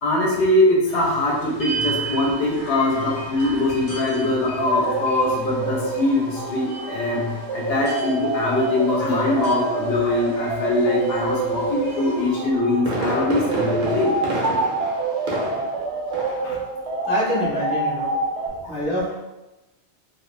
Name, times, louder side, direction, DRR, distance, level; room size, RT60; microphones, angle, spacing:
voice 1, 0.0-14.1 16.4-16.6, left 2 dB, 65° left, -3 dB, 0.8 m, -22 dB
sound 1, 0.9-12.3, right 4 dB, 40° left, 0.9 m, -36 dB
sound 2, 4.5-18.5, right 3 dB, 75° right, 0.9 m, -27 dB
Fireworks, 12.6-15.8 16.1-16.5 16.8-16.9, right 1 dB, 50° right, 0.7 m, -28 dB
voice 2, 17.1-18.1 18.7-19.2, equal, 10° right, -8 dB, 0.5 m, -26 dB
2.3 x 2.2 x 3.1 m, 1.0 s
omnidirectional pair, 1.2 m